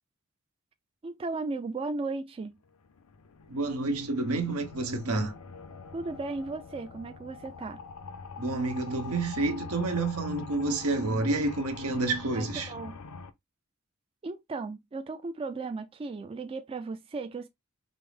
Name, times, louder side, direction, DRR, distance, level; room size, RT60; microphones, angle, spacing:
voice 1, 1.0-2.6 5.9-7.8 12.3-13.0 14.2-17.5, right 3 dB, 25° right, 0.3 m, -36 dB
sound 1, 2.6-13.3, left 4 dB, 80° left, 0.6 m, -44 dB
voice 2, 3.5-5.3 8.4-12.7, right 2 dB, 75° right, 1.0 m, -29 dB
5.2 x 2.0 x 3.3 m
head